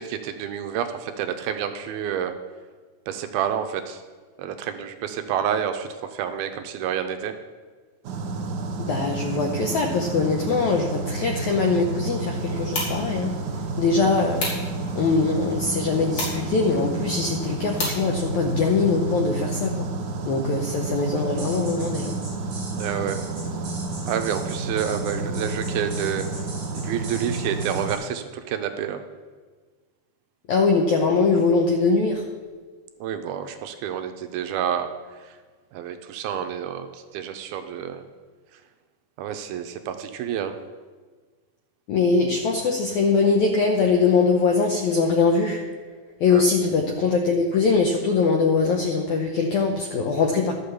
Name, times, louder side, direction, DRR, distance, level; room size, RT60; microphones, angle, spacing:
voice 1, 0.0-2.4 3.1-4.0 4.4-7.3 22.8-23.2 24.1-26.3 26.7-29.0 33.0-34.9 35.2-35.4 35.7-38.0 39.2-40.6 46.3-46.5, right 9 dB, 80° right, 7 dB, 2.4 m, -29 dB
sound 1, 8.0-27.9, right 3 dB, 65° right, 2.2 m, -30 dB
voice 2, 8.8-13.3 13.8-14.4 14.9-19.9 20.3-22.2 30.5-32.2 41.9-45.6 46.2-50.5, left 4 dB, 80° left, 2 dB, 1.7 m, -22 dB
sound 2, 12.3-18.7, left 2 dB, 55° left, 4.2 m, -35 dB
sound 3, 21.4-28.0, right 2 dB, 30° right, 3.1 m, -40 dB
12.5 x 6.6 x 7.0 m, 1.4 s
omnidirectional pair, 4.5 m